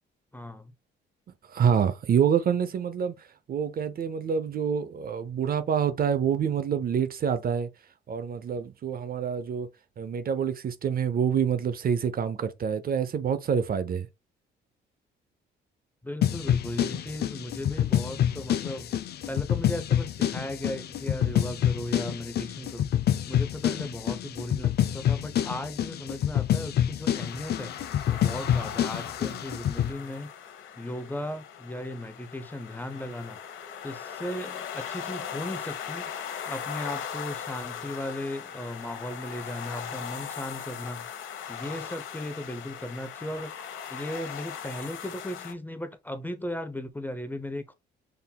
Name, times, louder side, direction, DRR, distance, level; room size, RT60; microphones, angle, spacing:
voice 1, 0.3-0.7 16.0-18.9 19.3-23.0 23.3-30.3 30.8-33.4 33.8-36.1 36.4-41.1 41.5-47.7, left 1 dB, 10° left, 0.6 m, -37 dB
voice 2, 1.5-7.7 8.1-9.7 10.0-14.1, right 7 dB, 50° right, 0.6 m, -27 dB
sound 1, 16.2-29.9, left 10 dB, 55° left, 0.4 m, -27 dB
sound 2, 27.1-45.5, left 8 dB, 85° left, 1.0 m, -39 dB
5.7 x 3.4 x 2.3 m
cardioid pair, 90°, 20 cm